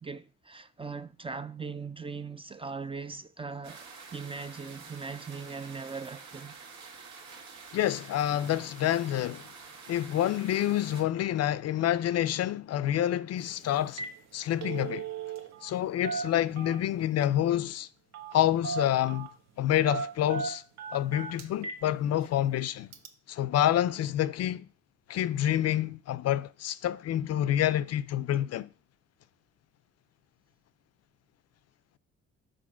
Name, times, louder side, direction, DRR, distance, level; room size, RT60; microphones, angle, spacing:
voice 1, 0.0-6.6, right 4 dB, 20° right, 0.4 m, -40 dB
sound 1, 3.6-11.0, right 4 dB, 80° right, 1.9 m, -48 dB
voice 2, 7.7-9.4 9.9-14.0 14.3-15.0 15.6-17.9 18.3-19.3 19.6-20.6 20.9-22.9 23.3-24.6 25.1-28.7, left 12 dB, 55° left, 0.4 m, -28 dB
Telephone, 13.4-13.5 13.8-14.2 14.5-15.7 16.0-17.0 18.1-18.4 18.6-19.3 19.9-21.8 22.2-22.3 22.9-23.1, right 5 dB, 60° right, 1.1 m, -36 dB
5.0 x 4.4 x 6.1 m
cardioid pair, 90°, 30 cm